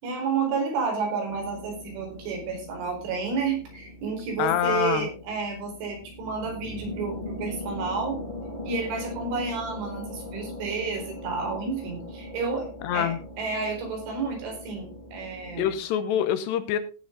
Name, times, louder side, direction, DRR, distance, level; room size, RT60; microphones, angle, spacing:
voice 1, 0.0-8.2 8.6-12.7 12.9-15.7, right 5 dB, 85° right, 2 dB, 7.0 m, -31 dB
sound 1, 1.3-15.8, left 1 dB, 15° left, 1.7 m, -40 dB
voice 2, 4.4-5.1 12.8-13.2 15.6-16.8, left 10 dB, 80° left, 11 dB, 2.8 m, -25 dB
17.5 x 7.9 x 3.9 m, 0.34 s
omnidirectional pair, 5.4 m